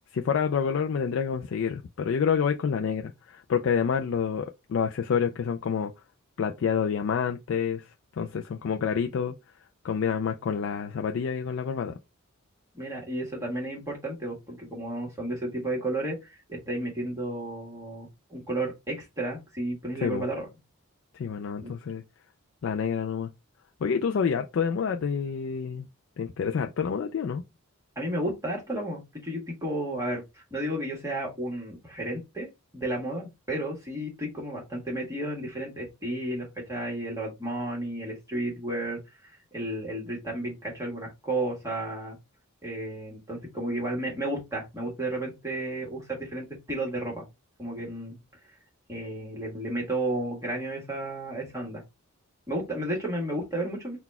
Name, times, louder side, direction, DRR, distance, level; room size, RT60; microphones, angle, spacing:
voice 1, 0.1-5.9 6.4-7.8 8.2-9.3 9.8-11.9 20.0-20.2 21.1-22.0 22.6-23.3 23.8-25.9 26.2-27.4, left 6 dB, 60° left, 0.3 m, -28 dB
voice 2, 12.7-16.2 16.5-20.5 27.9-30.2 30.5-32.5 32.7-42.2 42.6-47.2 47.6-48.2 48.9-51.8 52.5-54.0, right 1 dB, 15° right, 1.4 m, -32 dB
4.0 x 2.3 x 4.2 m
head